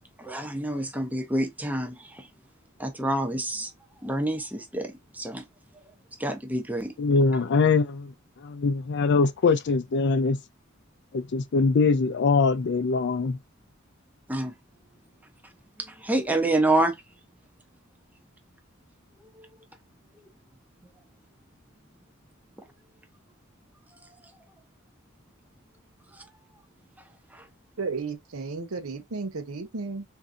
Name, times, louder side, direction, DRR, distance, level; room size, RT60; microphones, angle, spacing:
voice 1, 0.2-2.3 2.8-3.7 4.0-5.4 6.2-6.9 14.3-14.5 16.0-16.9 27.3-27.4, right 1 dB, 10° right, 0.6 m, -27 dB
voice 2, 7.0-8.1 8.4-10.4 11.1-13.4, left 4 dB, 55° left, 0.4 m, -22 dB
voice 3, 27.8-30.0, right 4 dB, 85° right, 0.7 m, -33 dB
3.6 x 2.7 x 2.5 m
head